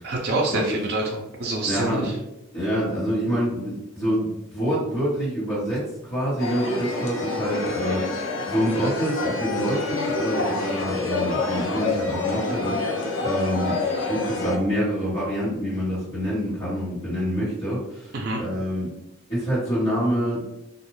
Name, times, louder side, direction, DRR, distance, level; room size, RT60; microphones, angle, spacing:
voice 1, 0.0-2.1 18.1-18.4, right 2 dB, 55° right, -2 dB, 0.5 m, -26 dB
voice 2, 1.7-2.1 2.5-13.7 14.1-18.9 19.3-20.6, equal, 30° left, -12 dB, 1.1 m, -26 dB
sound 1, 6.4-14.6, left 3 dB, 75° left, 0.6 m, -27 dB
2.4 x 2.3 x 3.0 m, 0.86 s
head